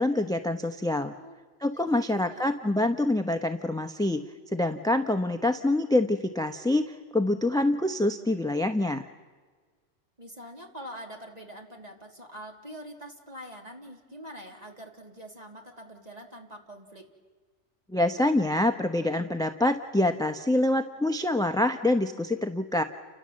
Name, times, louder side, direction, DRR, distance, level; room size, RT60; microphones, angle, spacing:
voice 1, 0.0-1.1 1.6-4.2 4.5-9.1 17.9-22.8, left 1 dB, 5° left, 7 dB, 0.9 m, -26 dB
voice 2, 1.7-2.4 10.2-17.1, equal, 35° right, 1 dB, 3.5 m, -44 dB
30.0 x 25.0 x 7.6 m, 1.5 s
omnidirectional pair, 1.2 m